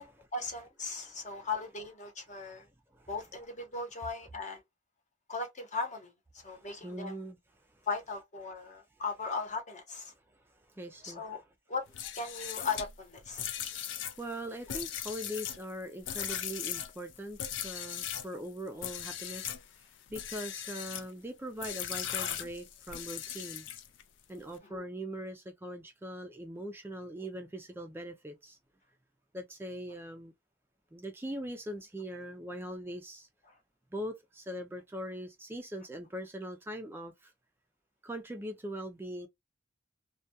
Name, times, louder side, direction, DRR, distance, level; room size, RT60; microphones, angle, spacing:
voice 1, 0.0-2.7 3.1-4.6 5.3-7.2 7.9-10.1 11.0-11.4 11.7-11.8 12.1-13.5 24.6-24.8, left 4 dB, 40° left, 0.8 m, -38 dB
voice 2, 6.4-7.4 10.3-11.3 14.2-19.5 20.1-23.7 24.3-28.6 29.3-30.3 30.9-33.3 33.9-37.3 38.0-39.3, equal, 10° right, 0.3 m, -41 dB
sound 1, 11.9-18.3 18.8-19.6 20.1-21.1 21.6-24.0, left 10 dB, 70° left, 0.4 m, -38 dB
2.2 x 2.2 x 2.6 m
head